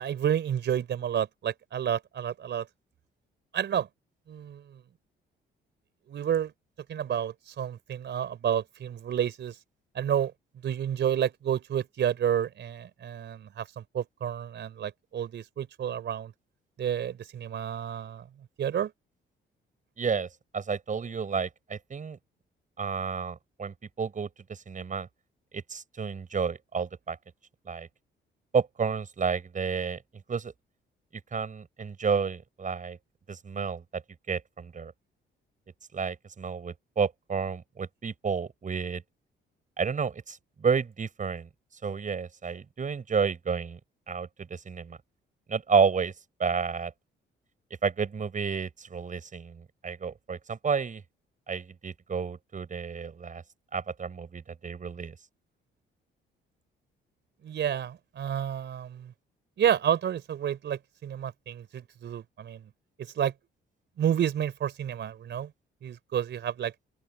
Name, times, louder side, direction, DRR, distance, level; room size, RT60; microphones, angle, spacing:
voice 1, 0.0-2.7 3.5-3.9 4.3-4.8 6.1-6.5 6.9-9.6 9.9-10.3 10.6-16.3 16.8-18.3 18.6-18.9 57.4-59.1 59.6-62.7 63.0-63.3 64.0-65.5 65.8-66.7, right 9 dB, 65° right, 4.4 m, -30 dB
voice 2, 20.0-22.2 22.8-25.1 25.5-27.2 27.7-27.9 28.5-30.0 30.3-30.5 31.3-33.0 33.3-34.0 34.3-34.9 35.9-39.0 39.8-41.5 41.8-43.8 44.1-45.0 45.5-46.1 46.4-46.9 47.8-51.0 51.5-53.4 53.7-55.1, right 5 dB, 40° right, 7.2 m, -31 dB
open air
cardioid pair, 90°, 20 cm